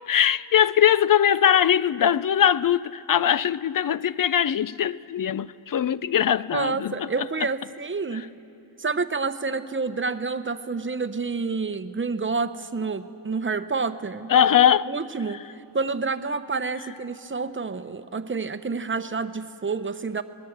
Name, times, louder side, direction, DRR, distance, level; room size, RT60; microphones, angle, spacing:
voice 1, 0.1-7.1 14.3-14.9, left 9 dB, 45° left, 0.5 m, -21 dB
voice 2, 6.5-8.4 8.8-14.3 14.9-15.4 15.7-20.2, right 4 dB, 25° right, 0.8 m, -28 dB
26.5 x 20.0 x 8.0 m
wide cardioid pair, 125°, 47 cm